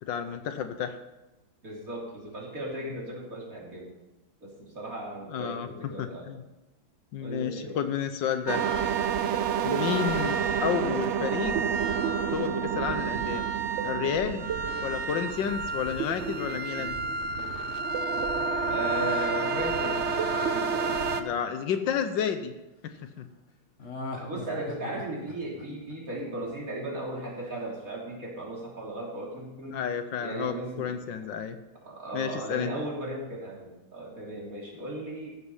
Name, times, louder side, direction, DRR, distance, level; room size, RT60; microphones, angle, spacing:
voice 1, 0.0-1.0 5.3-5.7 6.0-6.4 7.1-8.6 9.6-11.6 12.3-13.4 13.8-14.5 14.8-17.0 21.2-22.5 22.8-23.3 29.7-31.6 32.1-32.8, left 8 dB, 75° left, 9 dB, 1.5 m, -31 dB
voice 2, 1.6-3.9 4.4-6.3 7.2-7.8 18.7-21.0 24.1-29.8 30.2-30.9 31.9-35.3, right 1 dB, 45° right, -3 dB, 3.4 m, -36 dB
sound 1, 8.5-21.2, right 5 dB, 75° right, 0.6 m, -29 dB
Laughter, 18.0-22.2 23.8-26.8 27.1-27.2, left 2 dB, 40° left, 1.6 m, -43 dB
14.5 x 7.9 x 5.5 m, 1.0 s
omnidirectional pair, 2.1 m